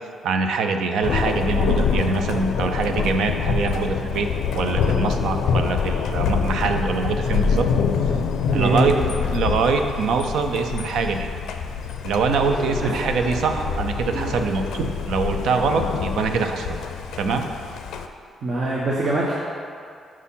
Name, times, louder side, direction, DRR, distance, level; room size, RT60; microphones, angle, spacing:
voice 1, 0.2-4.3 4.5-7.7 8.5-8.9 9.3-11.3 12.0-16.8 17.2-17.4, right 4 dB, 80° right, 6 dB, 0.5 m, -24 dB
Thunder, 1.0-18.1, left 6 dB, 90° left, 0.4 m, -25 dB
voice 2, 8.5-8.9 12.8-12.9 14.1-14.3 18.4-19.3, right 2 dB, 50° right, -4 dB, 0.9 m, -23 dB
sound 1, 12.2-15.0, equal, 5° left, 1.8 m, -35 dB
6.1 x 4.2 x 5.5 m, 2.3 s
cardioid pair, 125°, 0 cm